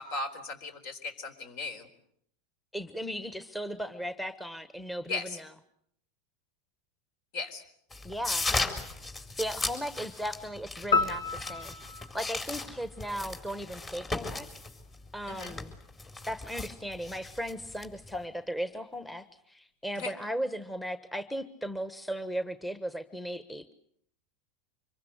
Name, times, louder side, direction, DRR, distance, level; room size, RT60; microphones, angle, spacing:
voice 1, 0.0-1.9 5.0-5.4 7.3-7.6 15.3-15.6 19.9-20.1, left 3 dB, 60° left, 9 dB, 3.9 m, -37 dB
voice 2, 2.7-5.5 8.0-8.5 9.4-11.7 12.1-14.5 15.1-15.7 16.3-23.7, equal, 5° left, 12 dB, 1.3 m, -36 dB
sound 1, 7.9-18.2, left 2 dB, 25° left, 4.1 m, -37 dB
sound 2, 10.9-13.4, left 4 dB, 80° left, 2.2 m, -31 dB
25.5 x 23.0 x 7.9 m, 0.69 s
hypercardioid pair, 90°, 0 cm